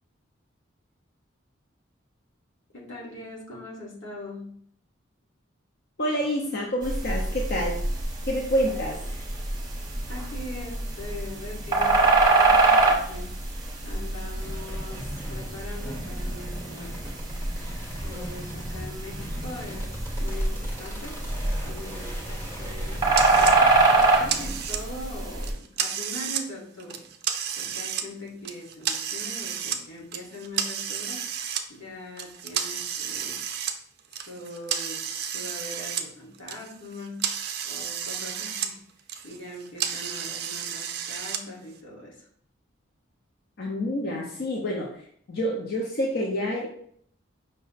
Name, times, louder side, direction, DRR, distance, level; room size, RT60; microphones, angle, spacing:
voice 1, 2.7-4.6 10.1-13.3 13.8-17.2 18.0-21.2 21.6-23.5 24.2-27.0 27.6-31.2 31.7-33.6 34.1-38.8 39.2-42.3, left 1 dB, 85° left, -4 dB, 1.5 m, -41 dB
voice 2, 6.0-7.8 8.3-9.0 43.6-44.9 45.3-46.7, equal, 55° left, -2 dB, 0.6 m, -27 dB
sound 1, 6.8-25.5, right 3 dB, 20° right, 0.9 m, -25 dB
sound 2, 14.4-24.5, equal, 10° left, 1.1 m, -40 dB
sound 3, 23.1-23.6 24.0-25.0 25.4-26.4 26.8-28.0 28.4-29.8 30.1-31.6 32.2-36.1 36.3-38.7 39.0-41.4, right 8 dB, 50° right, 0.4 m, -31 dB
5.3 x 2.1 x 3.9 m, 0.64 s
head